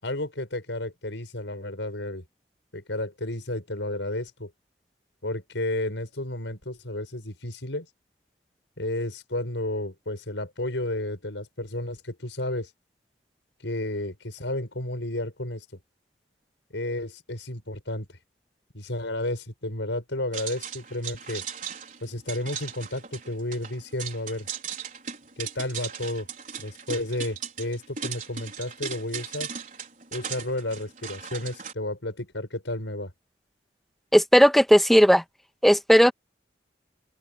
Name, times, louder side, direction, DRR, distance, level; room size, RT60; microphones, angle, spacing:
voice 1, 0.0-2.2 2.7-4.5 5.2-7.9 8.8-12.7 13.6-15.6 16.7-18.1 18.7-21.4 22.0-24.5 25.4-26.3 26.6-29.5 30.1-33.1, left 1 dB, 90° left, 6.2 m, -32 dB
sound 1, 20.3-31.7, right 7 dB, 45° right, 4.9 m, -38 dB
voice 2, 34.1-35.2 35.6-36.1, equal, ahead, 1.5 m, -16 dB
open air
head